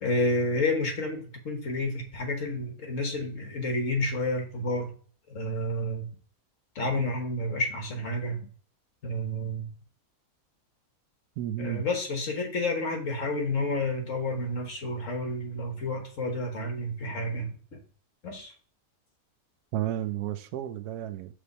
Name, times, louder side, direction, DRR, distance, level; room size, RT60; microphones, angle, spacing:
voice 1, 0.0-4.9 5.3-6.1 6.8-8.4 9.0-9.7 11.6-17.8 18.2-18.5, left 1 dB, 60° left, 1.6 m, -30 dB
voice 2, 11.4-11.8 19.7-21.3, right 12 dB, 85° right, 1.1 m, -32 dB
6.0 x 3.4 x 5.4 m
omnidirectional pair, 1.6 m